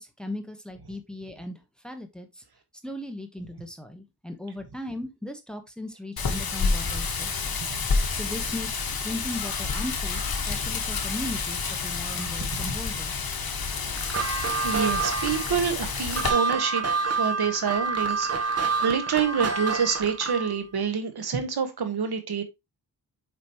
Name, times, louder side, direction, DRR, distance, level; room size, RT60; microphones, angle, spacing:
voice 1, 0.0-2.4 2.8-13.3 18.2-18.4, left 1 dB, ahead, 1.1 m, -38 dB
Wind, 6.2-16.3, left 4 dB, 65° left, 1.5 m, -29 dB
sound 1, 14.0-20.6, right 5 dB, 40° right, 1.2 m, -28 dB
voice 2, 14.6-16.8 17.1-22.4, right 6 dB, 75° right, 1.5 m, -27 dB
7.6 x 5.2 x 3.0 m
wide cardioid pair, 125°, 38 cm